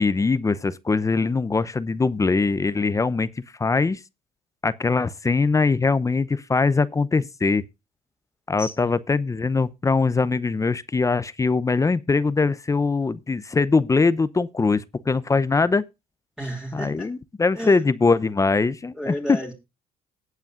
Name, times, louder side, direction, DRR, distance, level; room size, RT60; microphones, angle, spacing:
voice 1, 0.0-3.3 3.6-4.0 4.6-7.6 8.5-15.8 16.7-19.4, left 4 dB, 20° left, 0.7 m, -22 dB
voice 2, 8.6-8.9 16.4-17.1 17.6-17.8 18.9-19.5, equal, 5° right, 2.9 m, -32 dB
19.0 x 8.2 x 2.5 m
supercardioid pair, 70°, 15 cm